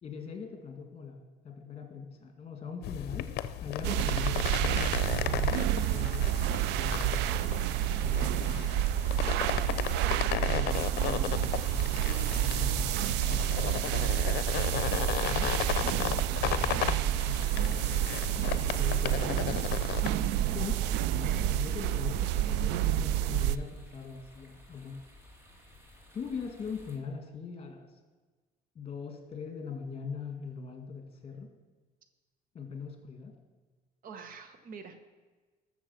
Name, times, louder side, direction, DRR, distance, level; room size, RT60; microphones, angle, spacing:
voice 1, 0.0-3.3 3.6-5.6 5.9-6.3 6.8-7.3 8.0-8.8 10.5-11.9 12.4-14.2 15.3-15.6 15.9-18.1 18.5-19.6 20.4-20.7 21.1-25.0 26.1-27.9 28.8-31.5 32.5-33.3, left 5 dB, 35° left, 4 dB, 2.2 m, -41 dB
sound 1, 2.8-20.1, left 12 dB, 75° left, 0.6 m, -35 dB
sound 2, 3.8-23.6, right 11 dB, 90° right, 0.4 m, -29 dB
sound 3, 7.7-27.0, left 2 dB, 15° right, 2.3 m, -55 dB
voice 2, 34.0-35.0, right 5 dB, 55° right, 8 dB, 1.3 m, -46 dB
13.5 x 6.9 x 5.9 m, 1.3 s
cardioid pair, 110°, 17 cm